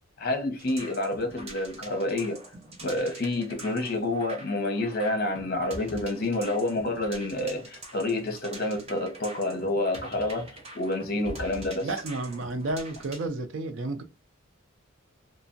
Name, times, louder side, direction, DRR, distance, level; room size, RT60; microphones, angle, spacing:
voice 1, 0.2-2.4 2.8-11.9, left 2 dB, 45° left, 0.8 m, -29 dB
sound 1, 0.6-13.3, right 1 dB, 30° right, 0.7 m, -45 dB
voice 2, 11.8-14.0, right 2 dB, 60° right, 0.5 m, -31 dB
3.2 x 2.0 x 2.5 m
head